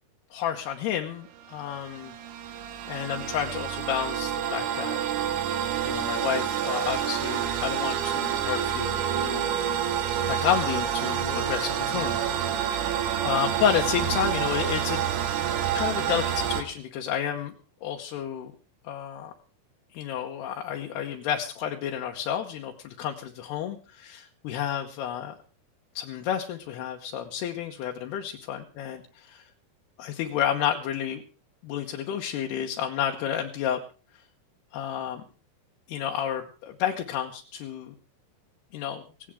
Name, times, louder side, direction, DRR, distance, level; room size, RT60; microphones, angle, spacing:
voice 1, 0.3-2.1 2.9-5.0 5.8-9.5 10.3-12.2 12.6-15.0 15.7-17.5 17.8-18.5 18.9-19.3 19.9-25.3 25.9-29.5 30.0-31.2 31.6-33.8 34.7-35.2 35.9-37.9 38.7-39.0, left 9 dB, 80° left, 2 dB, 3.1 m, -30 dB
sound 1, 1.4-16.6, right 9 dB, 90° right, 3.4 m, -28 dB
17.5 x 17.5 x 3.6 m, 0.37 s
omnidirectional pair, 4.7 m